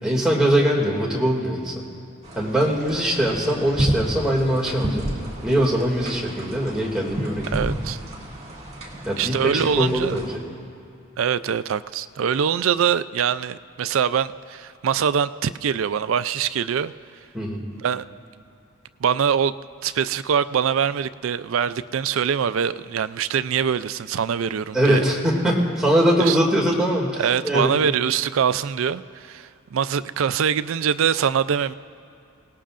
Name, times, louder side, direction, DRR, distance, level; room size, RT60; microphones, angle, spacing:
voice 1, 0.0-1.8 2.3-5.1 5.4-7.5 9.0-10.4 17.3-17.6 24.7-27.7, right 1 dB, 5° right, -4 dB, 2.4 m, -22 dB
sound 1, 2.2-10.4, right 1 dB, 30° right, 2.1 m, -31 dB
voice 2, 7.5-8.0 9.2-10.2 11.2-16.9 17.7-18.1 19.0-19.5 19.8-25.0 26.2-26.4 27.2-31.7, right 7 dB, 75° right, 14 dB, 0.4 m, -23 dB
28.0 x 18.0 x 2.5 m, 2.4 s
head